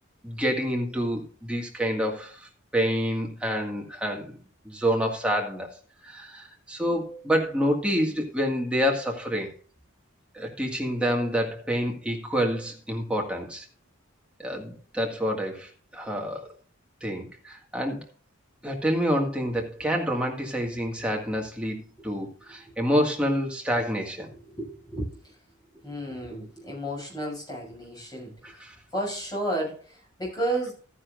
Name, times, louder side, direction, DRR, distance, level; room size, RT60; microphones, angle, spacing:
voice 1, 0.2-4.4 4.7-9.5 10.3-13.7 14.4-16.5 17.0-18.0 18.6-24.3 28.4-28.7, equal, 5° right, 0 dB, 1.9 m, -28 dB
voice 2, 24.3-25.4 25.7-28.6 28.9-30.7, right 1 dB, 20° left, -2 dB, 6.4 m, -33 dB
13.5 x 10.0 x 2.5 m, 0.39 s
head